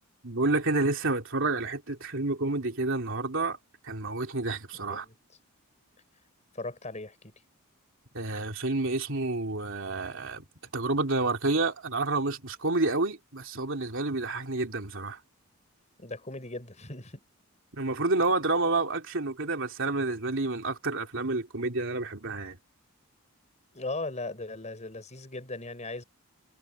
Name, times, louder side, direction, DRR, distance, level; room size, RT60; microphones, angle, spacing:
voice 1, 0.2-3.6 3.8-5.0 8.1-10.4 10.7-15.2 17.7-22.6, right 2 dB, 60° right, 3.3 m, -29 dB
voice 2, 4.7-5.1 6.5-7.3 16.0-17.2 23.7-26.0, left 2 dB, 30° left, 5.9 m, -38 dB
head